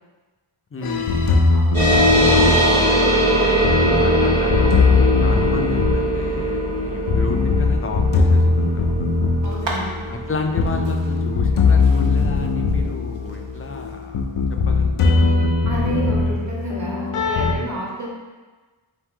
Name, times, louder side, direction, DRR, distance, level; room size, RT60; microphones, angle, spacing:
voice 1, 0.7-1.3 1.9-8.8 10.1-14.2 14.7-15.3, left 3 dB, 30° left, 3 dB, 0.4 m, -32 dB
sound 1, 0.8-17.5, left 4 dB, 85° left, 0.6 m, -20 dB
voice 2, 1.5-1.9 9.4-9.9 15.6-18.1, equal, 35° right, -4 dB, 1.2 m, -30 dB
sound 2, 1.7-12.7, equal, 80° right, 1.5 m, -21 dB
sound 3, 9.4-17.1, right 2 dB, 65° right, 0.8 m, -39 dB
4.5 x 2.7 x 3.7 m, 1.3 s
wide cardioid pair, 45°, 49 cm